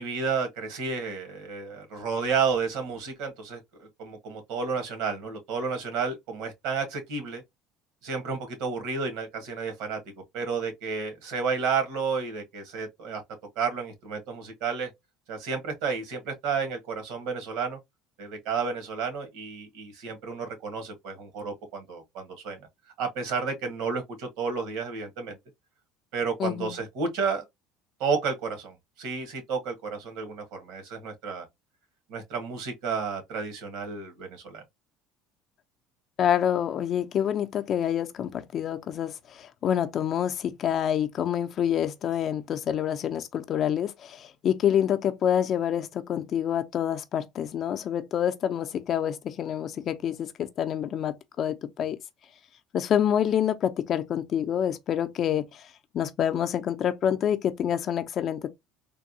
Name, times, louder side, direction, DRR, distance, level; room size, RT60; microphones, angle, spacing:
voice 1, 0.0-7.4 8.0-10.0 10.3-13.2 13.5-14.9 15.3-17.8 18.2-22.6 23.0-25.4 26.1-27.4 28.0-31.5 32.1-34.6, right 5 dB, 75° right, 1.4 m, -31 dB
voice 2, 26.4-26.8 36.2-52.0 52.7-55.6 55.9-58.6, left 9 dB, 45° left, 0.5 m, -27 dB
3.4 x 2.2 x 2.7 m
cardioid pair, 130°, 0 cm